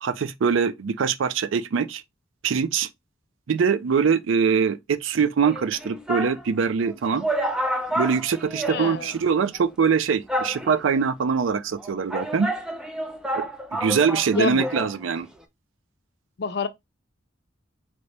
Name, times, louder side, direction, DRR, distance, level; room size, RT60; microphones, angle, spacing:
voice 1, 0.0-2.0 2.4-2.9 3.5-7.3 7.9-12.5 13.3-13.4 13.7-15.3, right 6 dB, 70° right, 0.4 m, -23 dB
sound 1, 5.5-6.4 6.9-7.0 7.2-9.3 9.5-9.6 10.3-11.0 11.8-14.9 15.2-15.3, right 1 dB, 5° right, 0.5 m, -29 dB
voice 2, 8.7-9.1 14.3-14.7 16.4-16.7, left 5 dB, 55° left, 0.5 m, -27 dB
4.1 x 2.9 x 3.3 m
head